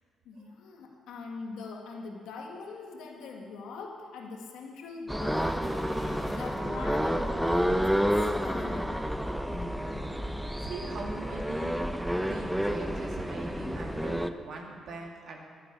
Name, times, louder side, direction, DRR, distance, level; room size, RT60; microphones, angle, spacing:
voice 1, 0.3-5.7 6.0-9.1, left 4 dB, 85° left, 1 dB, 1.8 m, -42 dB
sound 1, 5.1-14.3, equal, ahead, 0.7 m, -30 dB
sound 2, 5.6-6.7 7.1-7.2 8.7-9.5 9.8-9.9, left 1 dB, 20° left, 3.1 m, -49 dB
voice 2, 9.5-15.4, right 3 dB, 65° right, 0 dB, 2.5 m, -42 dB
11.0 x 10.5 x 8.6 m, 2.1 s
cardioid pair, 90°, 0 cm